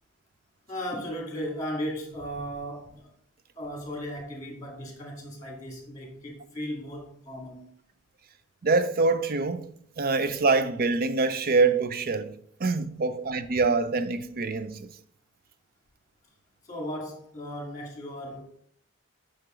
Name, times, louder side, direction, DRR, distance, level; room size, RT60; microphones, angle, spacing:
voice 1, 0.7-3.1 3.6-7.7 16.6-18.4, equal, 15° left, 2.0 m, -36 dB
voice 2, 8.6-9.7 10.0-12.3 12.6-14.9, right 3 dB, 45° right, 0.5 m, -25 dB
7.8 x 5.8 x 3.7 m
head